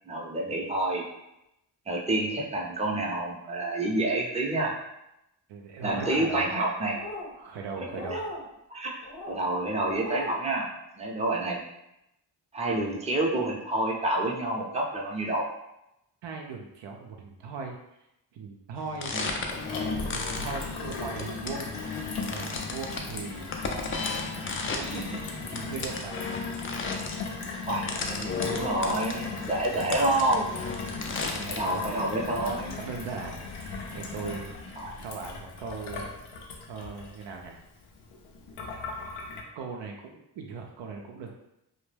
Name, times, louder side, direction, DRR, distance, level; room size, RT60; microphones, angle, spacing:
voice 1, 0.1-1.0 1.9-4.7 5.8-7.0 8.1-8.2 8.7-8.9 9.3-10.7 11.0-11.6 12.5-15.4 19.1-19.3 24.9-25.2 27.7-30.5 31.5-32.8 34.8-35.0, right 2 dB, 15° right, -1 dB, 0.6 m, -28 dB
voice 2, 5.5-6.5 7.4-8.2 16.2-17.8 18.3-19.2 20.1-21.7 22.3-23.5 24.1-25.1 25.5-26.3 30.7-31.8 32.4-36.1 36.7-37.6 39.5-41.3, right 4 dB, 65° right, 1 dB, 0.5 m, -39 dB
sound 1, 5.8-6.4 6.9-7.3 7.9-8.4 9.0-9.4 9.8-10.4, left 1 dB, 55° left, 0.9 m, -38 dB
sound 2, 18.8-31.7, left 4 dB, 30° left, 0.4 m, -35 dB
Gurgling / Water tap faucet / Sink (filling or washing), 19.5-39.4, left 4 dB, 85° left, 0.6 m, -38 dB
2.1 x 2.1 x 3.2 m, 0.84 s
supercardioid pair, 45°, 48 cm